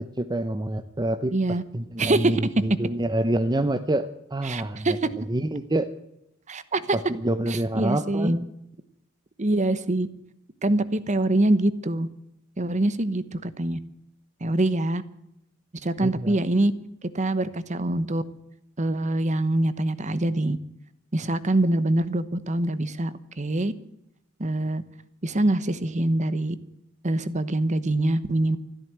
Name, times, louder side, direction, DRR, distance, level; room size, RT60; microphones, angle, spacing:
voice 1, 0.0-1.4 1.7-5.9 6.9-8.4 16.0-16.4, right 1 dB, 20° right, 9 dB, 0.7 m, -27 dB
voice 2, 1.3-1.6 2.0-2.4 4.4-4.9 6.5-7.0 7.5-8.3 9.4-10.1 10.6-12.1 12.6-13.8 14.4-15.0 15.8-16.7 17.0-18.2 18.8-20.6 21.1-23.7 24.4-24.8 25.2-26.6 27.0-28.6, right 1 dB, 35° right, 14 dB, 1.0 m, -24 dB
14.0 x 12.5 x 8.0 m, 0.80 s
head